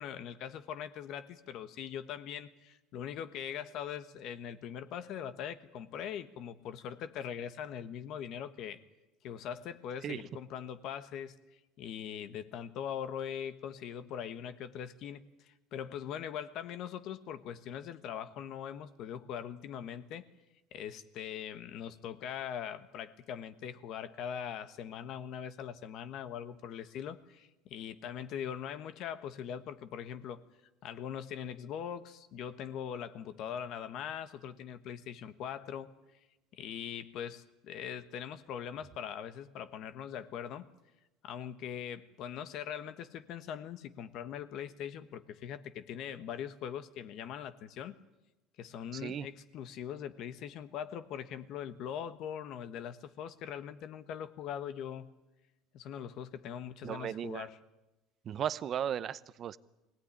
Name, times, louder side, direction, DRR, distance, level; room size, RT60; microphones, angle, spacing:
voice 1, 0.0-8.8 9.2-11.4 11.8-20.2 20.7-30.4 30.8-35.9 36.6-40.7 41.2-47.9 48.6-55.1 55.7-57.6, left 9 dB, 50° left, 11 dB, 1.3 m, -41 dB
voice 2, 48.9-49.3 56.8-57.5 58.2-59.6, right 9 dB, 35° right, 16 dB, 0.7 m, -36 dB
23.5 x 17.5 x 10.0 m, 1.0 s
cardioid pair, 155°, 0 cm